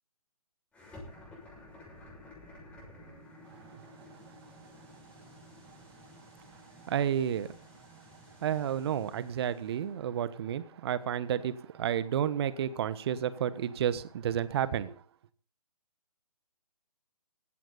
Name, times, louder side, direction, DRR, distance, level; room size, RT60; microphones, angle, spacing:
sound 1, 0.7-9.9, left 1 dB, 5° left, 6.2 m, -53 dB
voice 1, 6.8-7.5 8.4-14.9, right 9 dB, 45° right, 1.3 m, -31 dB
16.0 x 15.5 x 4.1 m
figure-of-eight pair, 145°, 19 cm